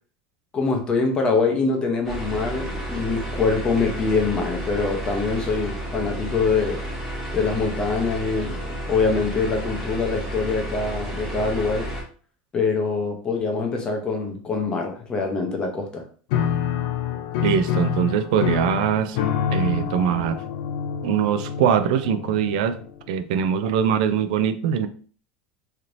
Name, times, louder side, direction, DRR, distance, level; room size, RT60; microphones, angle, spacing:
voice 1, 0.5-6.8 7.3-8.6 8.9-11.9 12.5-16.0, left 4 dB, 20° left, 3 dB, 0.6 m, -24 dB
sound 1, 2.0-12.0, right 1 dB, 5° right, 1.0 m, -31 dB
Piano, 16.3-23.1, left 8 dB, 65° left, 0.5 m, -27 dB
voice 2, 17.4-19.2 19.5-20.4 21.0-22.8 23.1-24.9, right 8 dB, 75° right, 10 dB, 0.4 m, -22 dB
3.2 x 2.8 x 2.6 m, 0.42 s
supercardioid pair, 165°, 4 cm